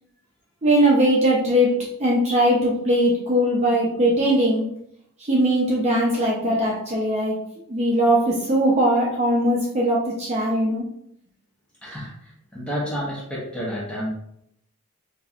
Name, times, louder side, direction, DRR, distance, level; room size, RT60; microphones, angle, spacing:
voice 1, 0.6-4.6 5.2-7.4 7.7-10.8, right 1 dB, 30° right, -5 dB, 0.7 m, -20 dB
voice 2, 11.8-14.1, equal, 5° left, -5 dB, 1.0 m, -30 dB
5.2 x 2.7 x 2.5 m, 0.72 s
head